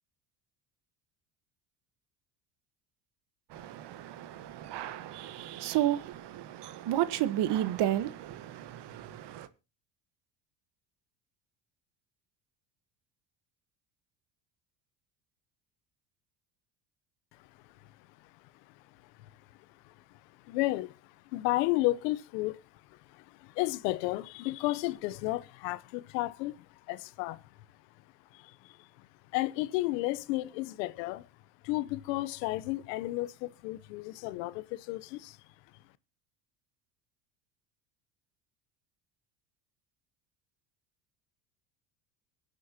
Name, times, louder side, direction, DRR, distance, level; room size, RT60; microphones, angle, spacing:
voice 1, 3.5-9.5, right 12 dB, 55° right, 1.3 m, -32 dB
voice 2, 17.3-31.3 31.6-35.8, left 18 dB, 80° left, 0.9 m, -34 dB
24.0 x 8.0 x 2.8 m
supercardioid pair, 90°, 49 cm